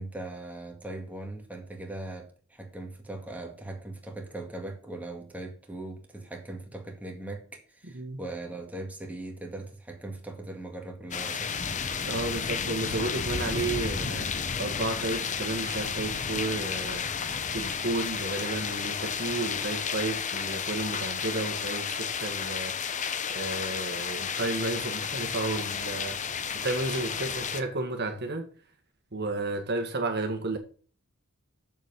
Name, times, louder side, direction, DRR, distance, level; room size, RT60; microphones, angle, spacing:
voice 1, 0.0-11.5, right 2 dB, 5° right, 2.0 m, -40 dB
voice 2, 7.8-8.2 12.0-14.3 14.6-17.1 17.5-26.2 26.5-28.5 29.1-30.6, right 2 dB, 50° right, 1.6 m, -32 dB
sound 1, 11.1-27.6, left 6 dB, 35° left, 0.8 m, -32 dB
7.4 x 7.3 x 5.3 m
head